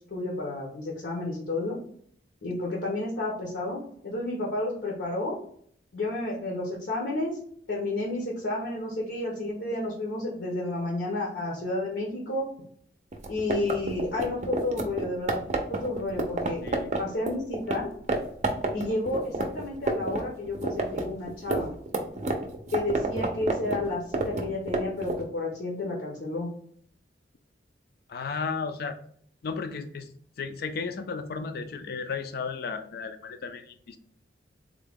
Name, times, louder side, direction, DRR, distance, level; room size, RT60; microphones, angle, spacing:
voice 1, 0.1-1.8 2.4-5.4 5.9-7.4 7.7-12.5 13.3-16.6 17.0-17.9 18.7-21.7 22.7-26.5, left 2 dB, 75° left, -2 dB, 0.8 m, -31 dB
sound 1, 13.1-17.8 18.1-18.2 18.4-20.2 20.4-25.2, right 3 dB, 40° right, 0.5 m, -29 dB
voice 2, 28.1-29.0 29.4-30.1 30.4-34.0, left 5 dB, 60° left, 8 dB, 0.4 m, -34 dB
3.6 x 2.2 x 3.4 m, 0.62 s
head